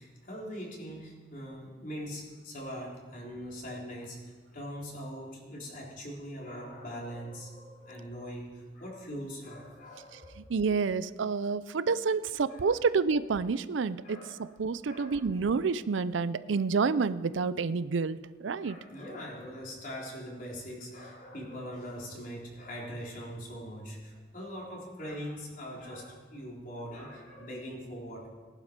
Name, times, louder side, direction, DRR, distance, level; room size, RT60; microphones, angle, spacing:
voice 1, 0.0-4.2 4.5-10.4 12.5-12.7 14.0-14.4 14.9-15.2 18.6-28.3, equal, 45° left, -3 dB, 3.7 m, -42 dB
voice 2, 10.5-18.8, right 5 dB, 80° right, 15 dB, 0.5 m, -29 dB
19.0 x 11.5 x 5.2 m, 1.4 s
head